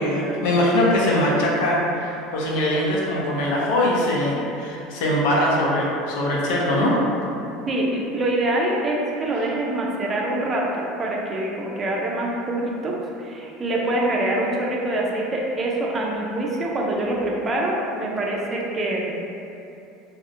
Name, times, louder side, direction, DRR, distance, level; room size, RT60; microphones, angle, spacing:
voice 1, 0.0-7.0, left 1 dB, 80° left, -4 dB, 0.5 m, -22 dB
voice 2, 7.7-19.1, right 1 dB, 25° right, -2 dB, 0.4 m, -25 dB
2.4 x 2.0 x 2.6 m, 2.7 s
supercardioid pair, 125°, 0 cm